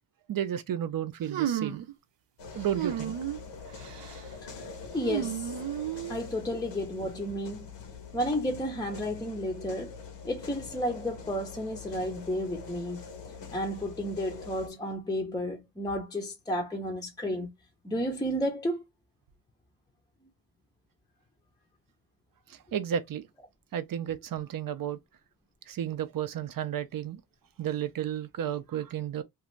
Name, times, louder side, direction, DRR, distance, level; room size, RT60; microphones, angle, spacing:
voice 1, 0.3-1.9 2.5-3.1 22.7-23.2 23.7-25.0 25.7-27.2 27.6-29.2, right 10 dB, 55° right, 0.5 m, -32 dB
sound 1, 1.3-1.9 2.7-3.4 3.8-4.2 5.0-6.2, right 11 dB, 90° right, 0.7 m, -32 dB
sound 2, 2.4-14.7, left 5 dB, 85° left, 0.9 m, -44 dB
voice 2, 4.4-5.5 6.1-7.7 8.1-9.9 10.2-13.0 13.5-17.5 17.8-18.8, equal, 10° left, 0.5 m, -32 dB
2.6 x 2.5 x 3.1 m
wide cardioid pair, 155°, 41 cm